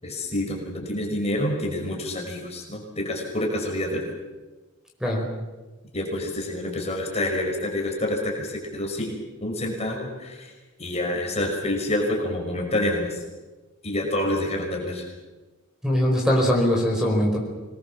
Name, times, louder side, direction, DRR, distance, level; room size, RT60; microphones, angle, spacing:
voice 1, 0.0-4.1 5.9-10.5 10.8-13.2 13.8-15.1, left 1 dB, 30° left, 0 dB, 5.6 m, -27 dB
voice 2, 15.8-17.4, equal, 5° right, 0 dB, 5.1 m, -21 dB
26.0 x 21.0 x 7.4 m, 1.2 s
head